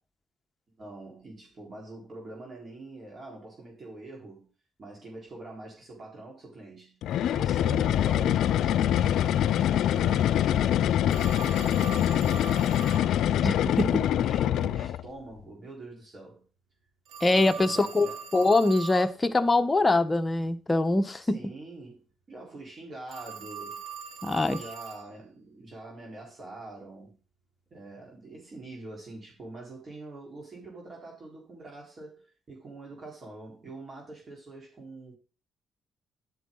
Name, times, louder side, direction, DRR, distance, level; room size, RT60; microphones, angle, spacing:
voice 1, 0.8-4.5 4.8-7.0 7.3-13.5 13.8-16.4 17.4-18.3 21.2-23.8 24.5-27.1 27.7-35.2, right 2 dB, 40° right, 4.2 m, -45 dB
sound 1, 7.0-15.1, left 11 dB, 80° left, 0.4 m, -24 dB
Telephone, 11.1-13.1 17.1-19.1 23.1-25.1, right 7 dB, 85° right, 3.4 m, -41 dB
voice 2, 13.4-13.9 17.2-18.1 18.3-21.4 24.2-24.6, left 2 dB, 20° left, 1.1 m, -23 dB
11.5 x 8.1 x 3.9 m
cardioid pair, 90°, 0 cm